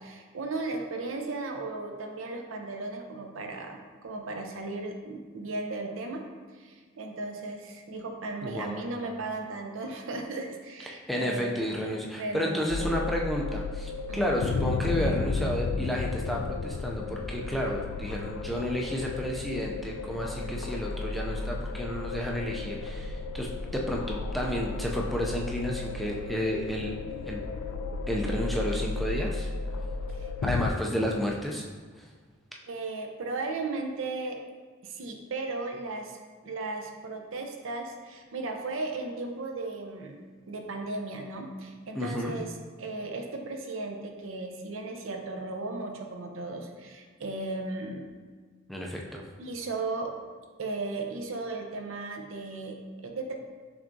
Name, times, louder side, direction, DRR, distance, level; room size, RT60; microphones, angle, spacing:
voice 1, 0.0-6.2 6.6-11.5 12.2-12.9 14.1-14.2 30.1-30.3 32.7-34.4 34.8-36.2 36.4-48.0 49.4-50.1 50.6-53.3, right 3 dB, 70° right, 3 dB, 0.6 m, -36 dB
voice 2, 8.4-8.8 10.8-27.0 27.3-27.4 28.1-29.5 30.4-31.6 32.0-32.1 41.9-42.4 48.7-49.2, equal, ahead, -2 dB, 0.3 m, -31 dB
sound 1, 12.7-30.7, left 3 dB, 85° left, 0.3 m, -33 dB
6.0 x 3.4 x 2.6 m, 1.5 s
head